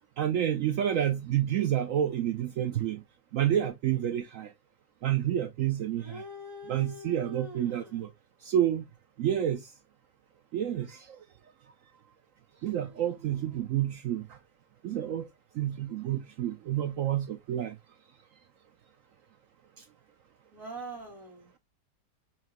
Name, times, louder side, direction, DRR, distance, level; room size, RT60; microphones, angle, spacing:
voice 1, 0.2-3.0 3.3-4.5 5.0-6.2 6.7-8.1 8.4-8.8 9.2-9.7 10.5-11.2 12.6-14.4 14.8-15.3 15.5-17.8 19.8-19.9, right 11 dB, 75° right, 0.7 m, -29 dB
voice 2, 6.0-7.9 12.6-13.2 20.5-21.6, equal, 50° right, 1.9 m, -44 dB
5.9 x 2.6 x 2.9 m
omnidirectional pair, 1.9 m